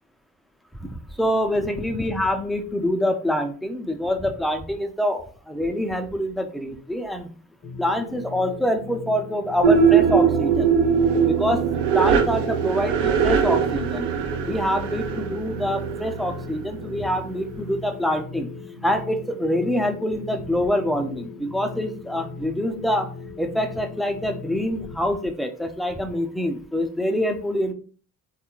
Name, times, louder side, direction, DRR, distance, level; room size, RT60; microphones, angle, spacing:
voice 1, 0.8-7.3 7.8-10.7 11.3-11.6 11.9-14.2 14.4-18.5 18.8-23.1 23.4-27.7, equal, ahead, 6 dB, 0.4 m, -25 dB
sound 1, 7.6-25.0, left 4 dB, 35° left, 0.7 m, -39 dB
sound 2, 9.6-17.0, right 7 dB, 70° right, 0.6 m, -21 dB
3.4 x 2.4 x 2.9 m, 0.41 s
hypercardioid pair, 45°, 44 cm